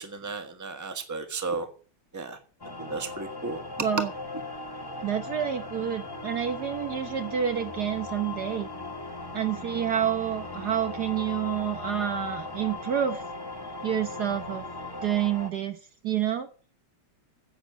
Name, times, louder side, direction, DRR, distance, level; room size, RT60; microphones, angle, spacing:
voice 1, 0.0-1.7 2.1-2.4 2.8-3.6 3.9-4.0, right 4 dB, 10° right, 1.2 m, -33 dB
sound 1, 2.6-15.5, left 3 dB, 10° left, 1.7 m, -38 dB
voice 2, 3.8-4.1 5.0-8.7 9.3-13.2 13.8-14.6 15.0-15.8 16.0-16.5, right 9 dB, 55° right, 1.4 m, -28 dB
10.0 x 8.5 x 8.7 m
omnidirectional pair, 2.3 m